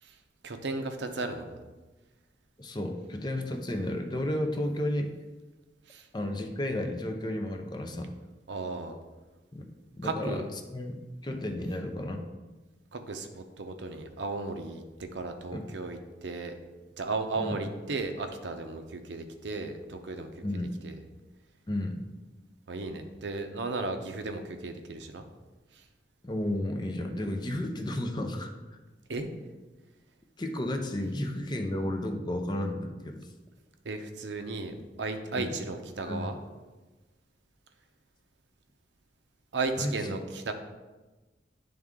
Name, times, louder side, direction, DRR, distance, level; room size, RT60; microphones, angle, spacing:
voice 1, 0.4-1.6 5.9-6.1 8.5-9.0 10.0-10.5 12.9-16.5 17.0-20.4 20.8-21.0 22.7-25.3 25.7-25.8 29.1-29.3 33.8-36.4 39.5-40.5, right 3 dB, 75° right, 6 dB, 0.7 m, -35 dB
voice 2, 2.6-5.1 6.1-8.1 9.5-9.7 10.0-10.4 10.7-12.2 15.5-15.6 17.4-17.6 20.4-20.7 21.7-22.0 26.2-28.5 30.4-33.3 35.4-35.5 36.1-36.3 39.8-39.9, left 1 dB, 25° left, 4 dB, 0.6 m, -32 dB
10.5 x 3.6 x 3.7 m, 1.2 s
head